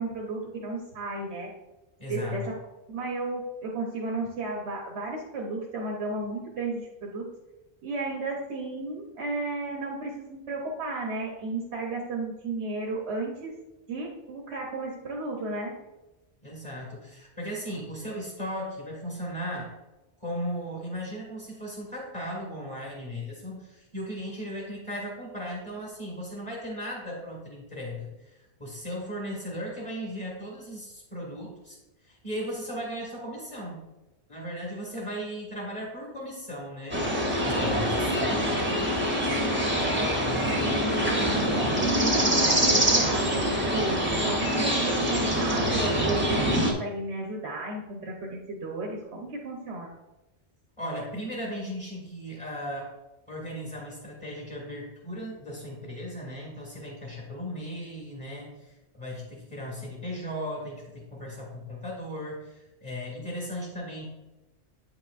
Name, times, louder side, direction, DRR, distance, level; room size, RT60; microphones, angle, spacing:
voice 1, 0.0-1.5 2.1-2.6 2.9-7.3 7.8-13.5 13.9-15.7 39.8-49.9, right 2 dB, 85° right, -1 dB, 1.2 m, -33 dB
voice 2, 2.0-2.4 16.4-19.7 20.2-31.8 32.0-33.8 34.3-38.4 50.8-52.9 53.3-64.1, equal, 25° left, -5 dB, 1.7 m, -36 dB
sound 1, 36.9-46.7, equal, 10° right, 0.8 m, -25 dB
8.7 x 5.8 x 2.5 m, 1.0 s
omnidirectional pair, 1.1 m